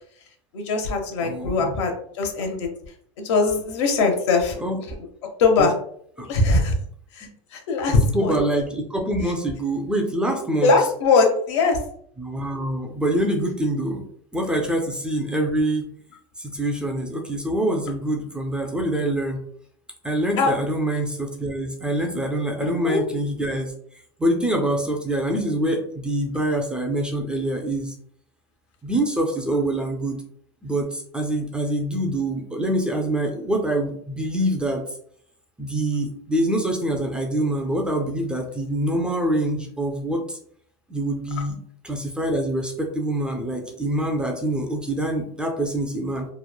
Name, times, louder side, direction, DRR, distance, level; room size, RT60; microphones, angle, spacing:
voice 1, 0.5-2.7 3.2-4.6 5.2-5.7 6.2-6.8 7.1-8.3 10.6-11.8 20.4-20.5 22.6-23.0, left 3 dB, 75° left, 3 dB, 0.7 m, -21 dB
voice 2, 1.2-1.7 4.6-4.8 5.6-5.7 6.2-6.3 8.1-10.7 12.2-14.0 14.3-15.9 16.4-19.4 20.0-23.7 24.2-27.9 28.8-30.2 30.6-34.8 35.6-40.4 40.9-41.6 41.8-46.3, right 1 dB, 5° right, 1 dB, 0.3 m, -25 dB
3.0 x 2.0 x 2.2 m, 0.63 s
supercardioid pair, 130°, 15 cm